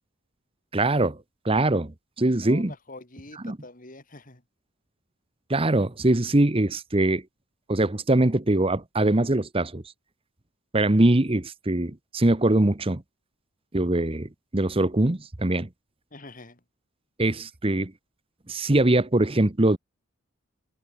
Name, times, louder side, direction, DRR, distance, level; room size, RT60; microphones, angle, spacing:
voice 1, 0.7-1.2 1.4-2.7 3.4-3.6 5.5-7.2 7.7-9.8 10.7-13.0 13.7-15.7 17.2-17.9 18.5-19.8, right 1 dB, 25° right, 1.0 m, -22 dB
voice 2, 2.4-4.4 16.1-16.6, left 2 dB, 40° left, 2.9 m, -45 dB
head